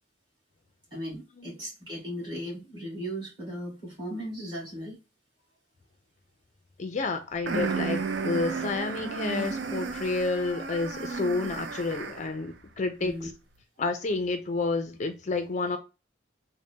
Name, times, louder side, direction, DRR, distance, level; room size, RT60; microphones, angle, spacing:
voice 1, 0.9-5.0 13.0-13.3, equal, 25° right, 1.9 m, -37 dB
voice 2, 6.8-13.3 13.8-15.8, left 3 dB, 40° left, 0.4 m, -30 dB
sound 1, 7.5-12.4, right 4 dB, 70° right, 0.5 m, -33 dB
3.8 x 2.1 x 3.4 m
head